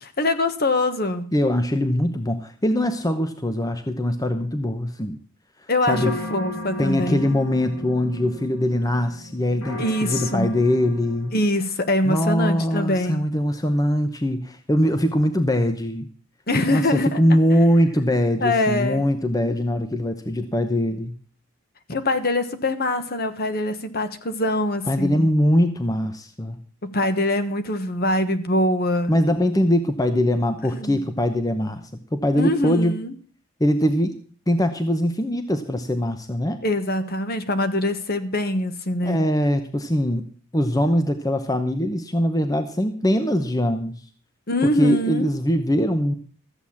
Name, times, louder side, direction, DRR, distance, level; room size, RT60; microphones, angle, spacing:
voice 1, 0.0-1.3 5.7-7.2 9.8-10.5 11.3-13.2 16.5-17.2 18.4-19.0 21.9-25.3 26.8-29.1 30.7-31.0 32.3-33.1 36.6-39.2 44.5-45.3, left 1 dB, 45° left, 9 dB, 1.3 m, -23 dB
voice 2, 1.3-5.2 5.9-6.1 6.8-11.3 12.0-16.1 16.7-21.1 24.9-26.6 29.1-31.8 32.1-33.0 33.6-34.2 34.5-36.6 39.0-40.3 40.5-44.0 44.6-46.1, equal, 15° left, 8 dB, 0.9 m, -22 dB
sound 1, 5.8-12.0, left 1 dB, 85° left, 3.9 m, -35 dB
14.0 x 8.1 x 7.1 m, 0.43 s
head